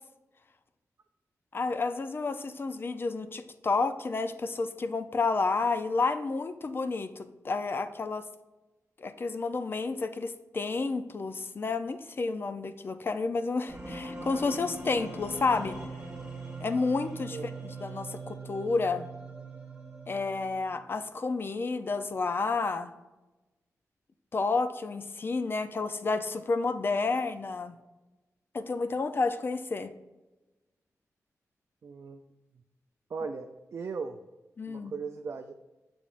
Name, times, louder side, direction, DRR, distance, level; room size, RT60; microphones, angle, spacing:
voice 1, 1.5-8.3 9.0-15.8 16.6-19.1 20.1-22.9 24.3-27.7 28.5-29.9 34.6-34.9, left 3 dB, 40° left, 10 dB, 0.5 m, -30 dB
sound 1, 13.7-20.7, right 2 dB, 15° right, 1.5 m, -41 dB
voice 2, 31.8-32.2 33.1-34.2 34.7-35.5, right 5 dB, 55° right, 5 dB, 0.4 m, -37 dB
7.1 x 6.8 x 2.5 m, 1.1 s
wide cardioid pair, 130°, 6 cm